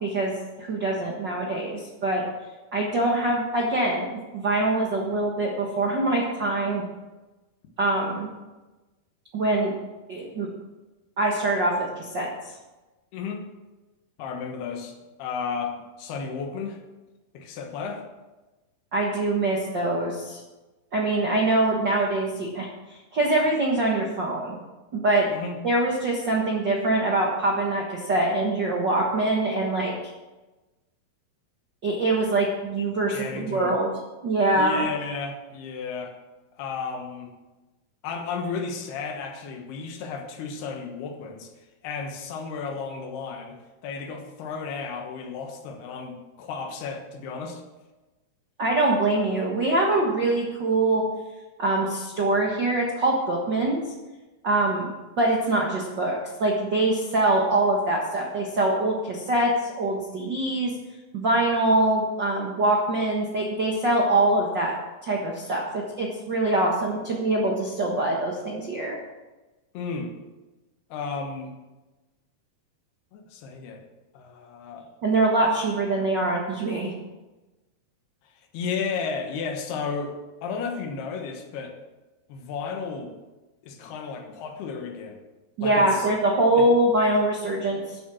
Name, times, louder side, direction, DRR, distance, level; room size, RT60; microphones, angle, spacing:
voice 1, 0.0-2.2 2.7-6.9 7.8-8.3 9.3-9.7 10.1-10.5 11.2-12.3 18.9-20.4 20.9-24.6 24.9-25.3 25.6-29.9 31.8-33.9 34.2-34.8 48.6-51.0 51.6-53.8 54.4-54.9 55.2-60.7 61.1-64.8 65.0-69.0 75.0-76.9 85.6-88.0, right 2 dB, 60° right, -2 dB, 1.1 m, -24 dB
voice 2, 13.1-13.5 14.2-16.8 17.3-18.0 25.3-25.6 33.1-33.8 34.5-36.1 36.6-37.3 38.0-41.5 41.8-43.6 43.8-47.6 69.7-70.1 70.9-71.5 73.1-73.8 74.1-74.9 78.5-80.2 80.4-81.8 82.3-83.1 83.6-85.2 85.6-86.1 86.5-86.7, left 5 dB, 85° left, 4 dB, 3.3 m, -33 dB
12.0 x 7.7 x 6.3 m, 1.1 s
omnidirectional pair, 4.5 m